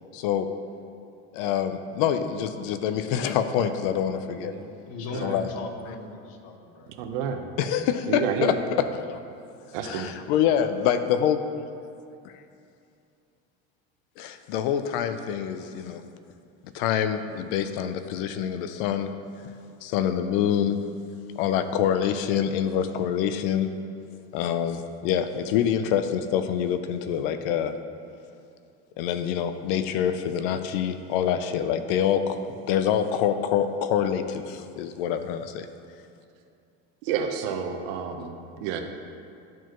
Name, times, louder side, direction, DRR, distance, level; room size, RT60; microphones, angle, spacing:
voice 1, 0.1-0.5 1.3-4.5 5.2-5.5 7.6-9.2 9.8-11.4 12.2-12.3 14.2-16.0 16.7-19.1 19.8-20.8 21.4-23.7 24.3-27.7 29.0-32.4 32.7-35.7, left 9 dB, 70° left, 9 dB, 0.6 m, -26 dB
voice 2, 4.2-4.7 5.1-5.4 7.0-7.4 8.1-8.5 9.7-10.1 37.0-38.8, right 7 dB, 70° right, 5 dB, 0.9 m, -30 dB
voice 3, 4.9-6.9, left 3 dB, 55° left, 4 dB, 1.0 m, -37 dB
13.0 x 4.6 x 3.0 m, 2.5 s
supercardioid pair, 145°, 29 cm